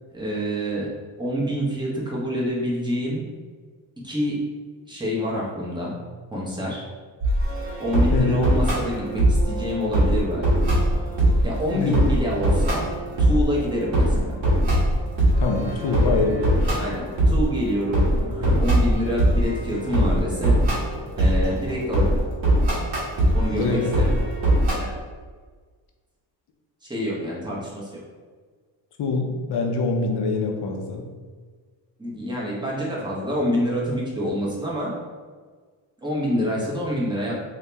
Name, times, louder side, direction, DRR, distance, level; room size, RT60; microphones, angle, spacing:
voice 1, 0.1-0.9 1.2-3.2 4.0-4.3 4.9-6.0 6.3-6.8 7.8-10.7 11.4-12.9 13.2-14.3 16.8-20.6 21.2-22.1 23.3-24.0 24.8-24.9 26.9-28.0 32.0-34.9 36.0-37.4, equal, 10° right, -6 dB, 1.1 m, -27 dB
sound 1, 7.2-24.7, right 1 dB, 75° right, 1.4 m, -22 dB
voice 2, 8.1-8.4 11.7-12.0 15.4-16.7 23.5-23.9 29.0-31.0, left 4 dB, 60° left, 2 dB, 0.7 m, -24 dB
2.9 x 2.8 x 3.4 m, 1.5 s
cardioid pair, 85°, 46 cm